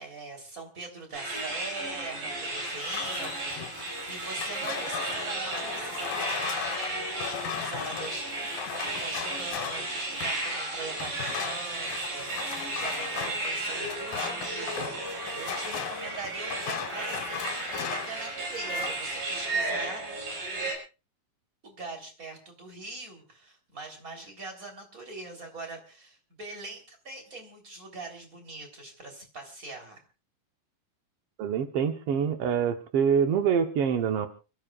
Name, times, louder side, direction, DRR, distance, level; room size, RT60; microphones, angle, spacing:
voice 1, 0.0-20.2 21.6-30.0, right 2 dB, 25° right, 3 dB, 3.6 m, -42 dB
sound 1, 1.1-20.7, right 2 dB, 65° right, 7.1 m, -34 dB
sound 2, 2.7-10.5 11.0-18.2 18.5-19.1, left 8 dB, 70° left, 3.1 m, -37 dB
voice 2, 31.4-34.3, right 7 dB, 80° right, 6 dB, 1.3 m, -25 dB
29.5 x 14.0 x 2.4 m, 0.33 s
omnidirectional pair, 4.2 m